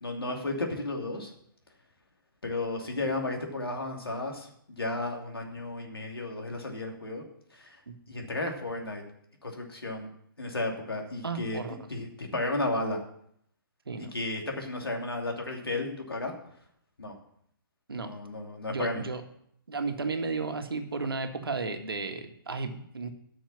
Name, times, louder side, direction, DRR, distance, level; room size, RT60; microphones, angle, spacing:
voice 1, 0.0-1.3 2.4-4.5 4.8-7.2 7.5-7.8 8.1-9.0 9.4-10.1 10.4-11.6 11.9-13.0 14.1-16.3 17.0-17.2 17.9-19.0, left 2 dB, 85° left, 1 dB, 2.7 m, -33 dB
voice 2, 11.2-11.8 13.9-14.1 17.9-18.1 18.7-19.2 19.7-23.1, right 4 dB, 80° right, 6 dB, 1.6 m, -33 dB
10.5 x 6.5 x 7.3 m, 0.69 s
figure-of-eight pair, 135°, 12 cm